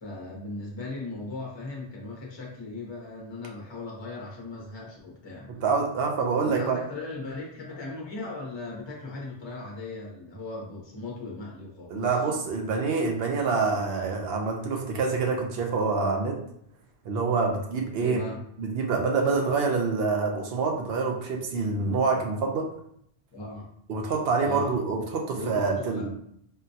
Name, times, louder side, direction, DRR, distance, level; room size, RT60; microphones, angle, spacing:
voice 1, 0.0-5.5 6.4-12.1 18.0-18.4 23.3-23.7 24.4-24.8 25.3-25.6 25.9-26.1, left 2 dB, 30° left, -3 dB, 0.7 m, -38 dB
voice 2, 5.5-6.8 11.9-16.4 17.0-18.2 18.6-22.7 23.9-26.1, right 4 dB, 70° right, 2 dB, 0.8 m, -26 dB
3.8 x 2.2 x 2.7 m, 0.69 s
omnidirectional pair, 1.1 m